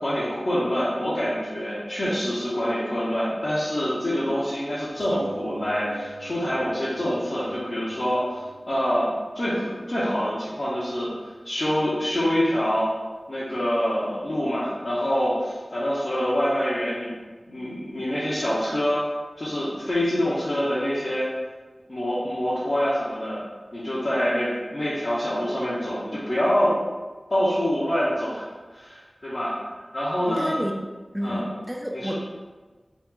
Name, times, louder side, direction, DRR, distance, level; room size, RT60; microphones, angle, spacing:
voice 1, 0.0-11.1 11.4-12.9 13.3-17.1 17.5-19.0 19.4-21.3 21.9-23.4 23.7-26.8 27.3-28.5 28.7-29.6 29.9-30.6 31.2-31.4 31.9-32.1, equal, 60° left, -11 dB, 0.8 m, -26 dB
sound 1, 5.0-10.0 10.8-10.9 11.2-11.3, right 2 dB, 75° right, 0.4 m, -42 dB
voice 2, 30.3-30.7 31.1-32.1, equal, 15° right, 1 dB, 0.4 m, -30 dB
3.0 x 2.4 x 3.6 m, 1.3 s
wide cardioid pair, 60°, 0 cm